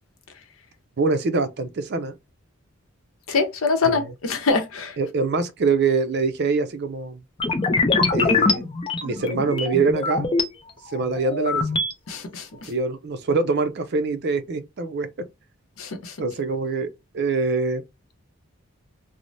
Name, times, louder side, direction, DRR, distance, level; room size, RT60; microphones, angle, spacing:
voice 1, 1.0-2.1 3.8-4.0 5.0-7.2 8.1-8.7 9.0-10.3 10.9-11.8 12.7-15.1 16.2-17.8, right 4 dB, 55° right, 0.5 m, -24 dB
voice 2, 3.3-5.0 12.1-12.7 15.8-16.2, left 4 dB, 85° left, 0.7 m, -24 dB
sound 1, 7.4-10.4 10.9-11.9, left 3 dB, 25° left, 0.5 m, -23 dB
3.1 x 2.0 x 2.6 m
head